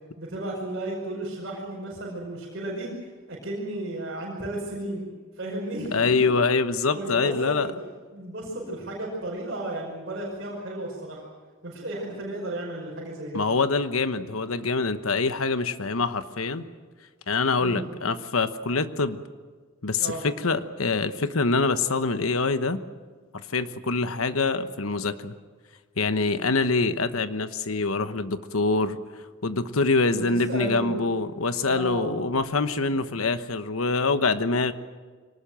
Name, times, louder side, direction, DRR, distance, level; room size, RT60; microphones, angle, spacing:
voice 1, 0.2-5.1 5.4-6.3 6.9-7.8 8.1-11.3 11.6-13.4 17.6-17.8 20.0-20.2 30.2-31.0 31.7-32.3 32.8-33.0, right 1 dB, 55° right, -4 dB, 5.6 m, -34 dB
voice 2, 5.9-7.7 13.3-16.7 17.3-19.2 19.8-22.8 23.3-25.3 26.0-29.0 29.4-34.7, left 3 dB, 90° left, 11 dB, 1.1 m, -25 dB
24.0 x 19.0 x 7.6 m, 1.5 s
head